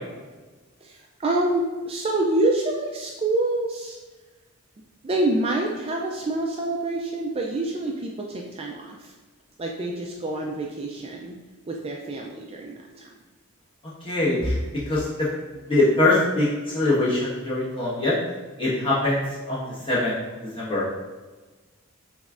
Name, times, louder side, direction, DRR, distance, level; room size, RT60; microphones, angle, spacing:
voice 1, 0.8-4.0 5.0-9.1 9.6-11.4 11.7-13.1, right 2 dB, 25° right, 0 dB, 0.3 m, -27 dB
voice 2, 14.0-14.6 14.9-15.3 15.7-16.5 16.7-18.1 18.6-20.8, left 2 dB, 25° left, -8 dB, 1.4 m, -23 dB
5.1 x 3.5 x 2.5 m, 1.3 s
head